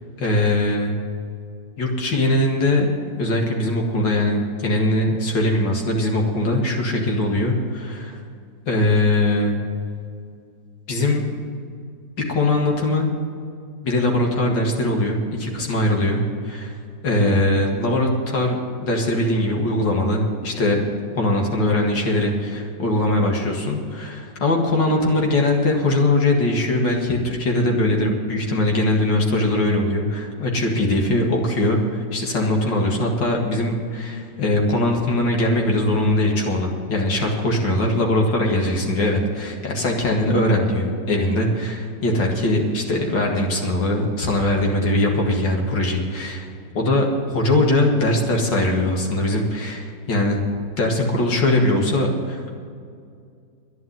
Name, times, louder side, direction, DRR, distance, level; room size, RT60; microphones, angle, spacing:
voice 1, 0.2-0.9 1.8-2.9 3.1-8.2 8.7-9.6 10.9-11.3 12.3-13.1 13.8-18.6 18.8-46.5 46.7-50.4 50.8-52.5, left 1 dB, 90° left, 0 dB, 2.6 m, -21 dB
11.0 x 10.5 x 7.9 m, 2.3 s
omnidirectional pair, 1.9 m